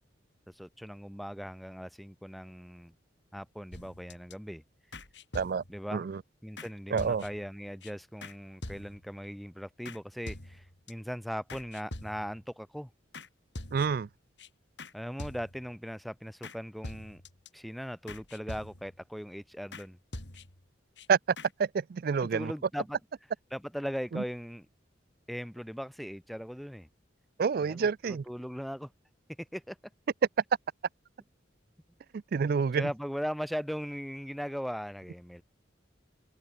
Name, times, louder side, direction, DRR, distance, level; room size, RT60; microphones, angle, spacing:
voice 1, 0.5-2.9 3.3-4.6 5.7-6.1 6.4-12.9 14.9-17.2 17.5-20.0 22.2-23.0 23.5-24.7 25.3-26.9 27.6-28.9 29.4-29.8 32.7-35.4, equal, ahead, 0.8 m, -39 dB
sound 1, 3.7-4.3 4.9-5.9 6.6-6.7 7.0-7.5 7.8-7.9 8.2-8.4 8.6-9.1 9.8-10.0 10.3-10.9 11.5-12.4 13.1-13.3 13.5-14.1 14.4-14.5 14.8-14.9 15.2-15.7 16.4-16.6 16.8-17.5 18.1-19.0 19.7-19.9 20.1-20.7 21.0-21.1 21.4-21.5, left 1 dB, 65° left, 4.1 m, -44 dB
voice 2, 6.9-7.2 13.7-14.1 21.1-21.2 21.6-22.5 24.1-24.2 27.4-28.2 32.1-32.9, right 6 dB, 50° right, 0.3 m, -28 dB
head